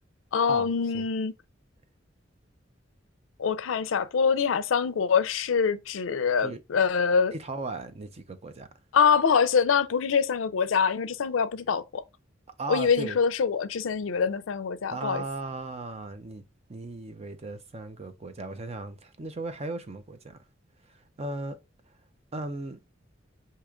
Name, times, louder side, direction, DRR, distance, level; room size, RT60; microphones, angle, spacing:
voice 1, 0.3-1.3 3.4-7.3 8.9-12.0 12.7-15.2, left 6 dB, 85° left, 0.4 m, -24 dB
voice 2, 7.3-8.7 12.6-13.2 14.9-16.4 16.7-20.4 21.2-21.6 22.3-22.8, right 3 dB, 35° right, 0.6 m, -36 dB
4.8 x 2.8 x 3.6 m
head